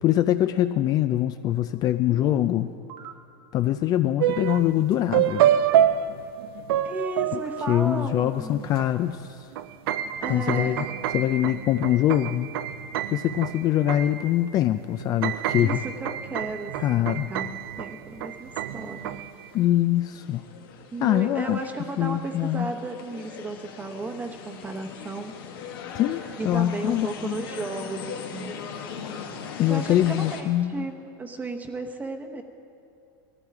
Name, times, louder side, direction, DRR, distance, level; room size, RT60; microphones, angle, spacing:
voice 1, 0.0-2.7 3.5-5.5 7.7-9.3 10.3-10.8 11.1-12.5 13.1-15.8 16.8-17.3 19.5-20.4 21.0-21.6 22.0-22.7 25.9-27.3 29.6-30.9, left 13 dB, 30° left, 10 dB, 0.3 m, -23 dB
voice 2, 2.0-2.7 6.8-8.9 10.2-10.9 15.6-19.2 20.9-25.3 26.4-28.9 29.7-32.4, right 3 dB, 15° right, 5 dB, 0.9 m, -34 dB
sound 1, 2.9-3.1 5.3-5.4 7.7-7.8 10.1-10.6, right 9 dB, 55° right, 1.2 m, -42 dB
sound 2, 4.2-4.8 5.1-8.0 8.8-8.9 9.2-14.6 14.9-19.4, right 10 dB, 80° right, 0.5 m, -27 dB
sound 3, 18.3-30.4, left 6 dB, 80° left, 1.7 m, -40 dB
18.0 x 14.0 x 4.8 m, 2.5 s
supercardioid pair, 150°, 12 cm